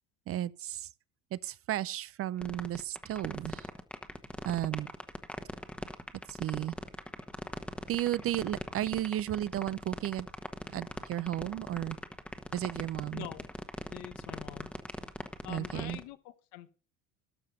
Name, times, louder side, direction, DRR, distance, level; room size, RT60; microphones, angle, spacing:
voice 1, 0.3-0.9 1.3-3.7 4.4-4.9 6.3-6.8 7.9-10.3 10.7-12.0 12.5-13.3 15.5-16.0, right 13 dB, 40° right, 0.5 m, -34 dB
sound 1, 2.4-16.0, left 1 dB, 5° left, 1.3 m, -40 dB
voice 2, 13.1-13.5 13.9-14.7 15.4-16.7, left 15 dB, 65° left, 1.2 m, -45 dB
13.0 x 5.7 x 6.6 m
hypercardioid pair, 80°, 36 cm